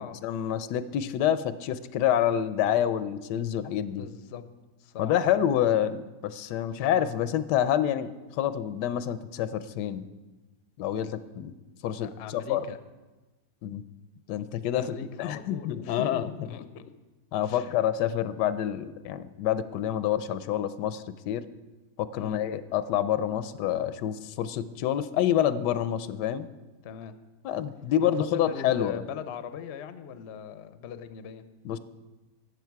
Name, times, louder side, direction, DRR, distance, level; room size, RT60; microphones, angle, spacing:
voice 1, 0.2-4.0 5.0-10.1 10.8-11.5 11.8-12.6 13.6-13.8 14.3-16.3 17.3-21.4 22.0-26.5 27.4-29.0 31.6-31.8, left 10 dB, 90° left, 13 dB, 1.2 m, -27 dB
voice 2, 3.9-4.4 4.8-5.4 6.7-6.9 12.0-12.8 14.7-16.8 17.4-17.8 22.2-22.4 26.8-27.1 28.0-31.4, left 8 dB, 65° left, 11 dB, 0.7 m, -40 dB
12.5 x 7.9 x 4.6 m, 1.2 s
omnidirectional pair, 1.8 m